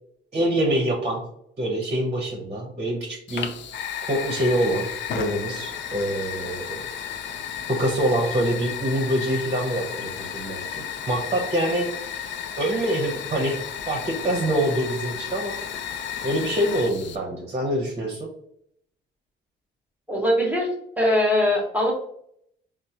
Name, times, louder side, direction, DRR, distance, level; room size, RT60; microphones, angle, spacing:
voice 1, 0.3-1.2 1.6-3.5 4.0-4.9 5.1-6.9 7.7-15.5 16.2-18.3, right 1 dB, 30° right, 1 dB, 0.8 m, -25 dB
Fire, 3.3-17.2, left 8 dB, 65° left, 0.4 m, -33 dB
voice 2, 20.1-20.7 21.0-21.9, left 1 dB, 10° right, -2 dB, 1.0 m, -21 dB
4.5 x 2.0 x 2.7 m, 0.71 s
cardioid pair, 90°, 20 cm